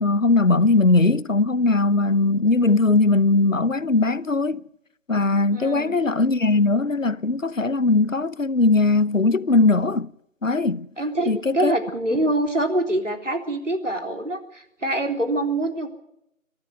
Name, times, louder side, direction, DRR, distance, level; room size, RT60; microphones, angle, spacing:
voice 1, 0.0-4.6 5.1-10.1 10.4-10.9 11.3-11.7 12.1-12.2, left 3 dB, 65° left, 0.9 m, -20 dB
voice 2, 5.5-6.0 11.0-15.9, right 1 dB, 60° right, 3.6 m, -25 dB
22.5 x 13.0 x 9.5 m
figure-of-eight pair, 180°, 41 cm